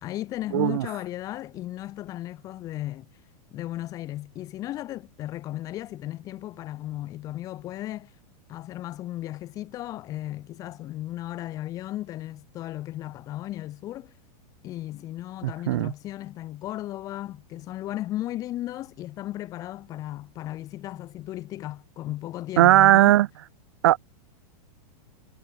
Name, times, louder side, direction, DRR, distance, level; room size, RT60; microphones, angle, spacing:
voice 1, 0.0-3.1 3.5-8.1 8.5-14.1 14.6-23.2, left 14 dB, 15° left, 1.1 m, -35 dB
voice 2, 0.5-0.8 15.7-15.9 22.6-23.3 23.8-24.0, right 14 dB, 40° right, 0.5 m, -17 dB
supercardioid pair, 180°, 21 cm